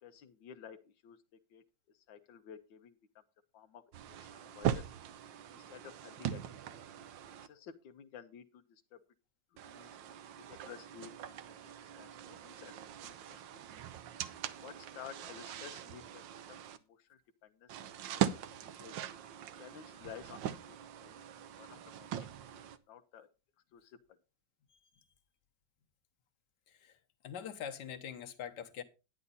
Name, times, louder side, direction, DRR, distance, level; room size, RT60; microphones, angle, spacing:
voice 1, 0.0-1.2 1.5-1.6 1.9-3.0 3.5-4.9 5.5-6.4 6.7-6.8 7.4-9.0 9.6-9.9 10.5-13.8 14.6-18.2 18.5-19.0 19.6-22.3 22.5-23.3 23.7-24.0, left 8 dB, 90° left, 1.5 m, -53 dB
sound 1, 3.9-7.5 9.6-16.8 17.7-22.8, right 10 dB, 85° right, 1.5 m, -41 dB
voice 2, 27.2-28.8, left 8 dB, 70° left, 1.6 m, -43 dB
9.9 x 9.7 x 4.0 m
omnidirectional pair, 2.0 m